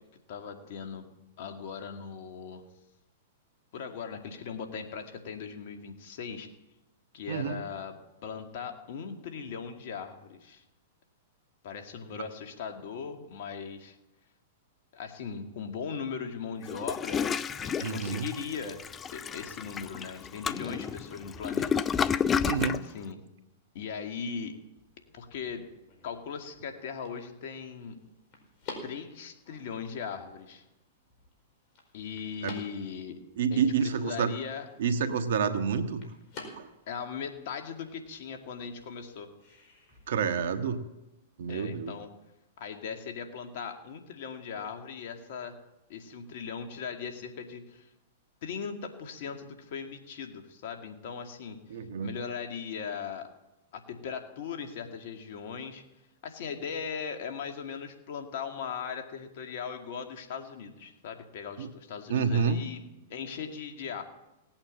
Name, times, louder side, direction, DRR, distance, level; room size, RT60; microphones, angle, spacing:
voice 1, 0.3-1.1 1.4-2.6 3.7-6.5 7.1-8.0 8.2-10.6 11.6-14.0 14.9-17.3 17.6-18.9 19.1-21.7 22.6-23.2 23.7-24.5 25.1-25.6 26.0-28.0 28.8-30.6 31.9-33.2 33.5-34.7 36.9-39.3 41.5-42.1 42.6-45.5 45.9-47.9 48.4-51.6 52.0-53.3 53.7-55.8 56.2-64.0, left 6 dB, 60° left, 5 dB, 2.3 m, -39 dB
Toilet flush, 16.7-22.8, left 7 dB, 20° left, 0.5 m, -31 dB
voice 2, 17.8-18.3 22.4-22.8 32.4-32.6 33.4-34.3 34.8-36.0 36.6-36.7 40.1-40.8 41.4-41.9 51.7-52.1 61.6-61.7 62.1-62.6, right 6 dB, 70° right, 8 dB, 1.5 m, -28 dB
sound 1, 24.6-40.1, left 3 dB, 45° left, 4.6 m, -51 dB
18.0 x 8.8 x 7.6 m, 0.97 s
hypercardioid pair, 115°, 0 cm